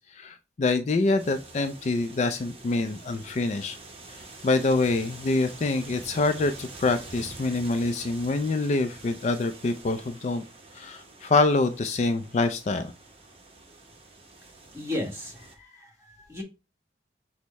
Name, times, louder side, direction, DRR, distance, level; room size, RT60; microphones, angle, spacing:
voice 1, 0.0-3.8 4.1-10.4 10.7-12.9, left 3 dB, 40° left, 8 dB, 0.3 m, -26 dB
sound 1, 1.2-15.5, right 2 dB, 35° right, 0.9 m, -46 dB
voice 2, 14.7-16.4, left 1 dB, 15° right, 0 dB, 1.3 m, -35 dB
6.3 x 2.1 x 4.0 m, 0.29 s
head